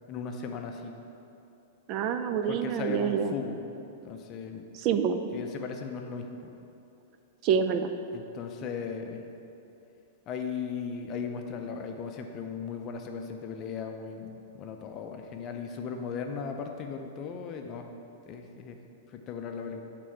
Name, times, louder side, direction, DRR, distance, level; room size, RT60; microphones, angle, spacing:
voice 1, 0.1-1.0 2.5-3.7 4.0-4.7 5.3-6.5 8.1-9.2 10.3-17.9 18.3-18.8 19.1-19.8, left 6 dB, 30° left, 4 dB, 0.6 m, -37 dB
voice 2, 1.9-3.4 4.8-5.2 7.4-7.9, right 7 dB, 40° right, 9 dB, 0.4 m, -27 dB
8.3 x 3.8 x 4.5 m, 2.8 s
supercardioid pair, 145°, 0 cm